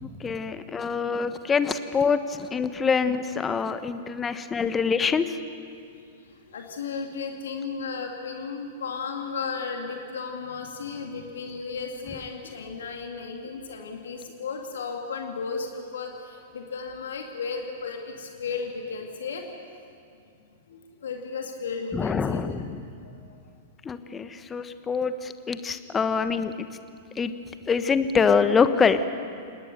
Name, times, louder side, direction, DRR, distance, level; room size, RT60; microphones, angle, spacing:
voice 1, 0.0-5.4 21.9-22.8 23.8-26.7 27.2-27.3 27.7-29.0, left 5 dB, 15° left, 11 dB, 1.2 m, -25 dB
voice 2, 5.8-19.5 20.7-22.5 23.0-23.4, left 5 dB, 65° left, 3 dB, 2.3 m, -35 dB
29.5 x 19.0 x 6.8 m, 2.4 s
figure-of-eight pair, 100°, 0 cm